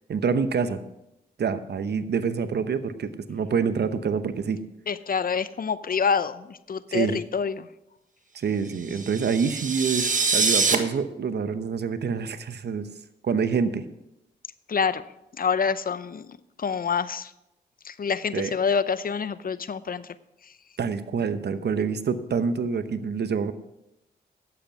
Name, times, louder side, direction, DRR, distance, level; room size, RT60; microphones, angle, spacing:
voice 1, 0.1-0.8 1.4-4.6 6.9-7.2 8.3-12.9 13.2-13.8 18.3-18.5 20.8-23.5, right 6 dB, 60° right, 11 dB, 1.0 m, -26 dB
voice 2, 4.9-7.7 14.7-15.1 15.4-17.3 17.8-20.1, left 6 dB, 50° left, 15 dB, 0.7 m, -27 dB
sound 1, 8.9-10.7, right 4 dB, 45° right, 1.4 m, -24 dB
11.0 x 7.9 x 6.0 m, 0.87 s
supercardioid pair, 45°, 19 cm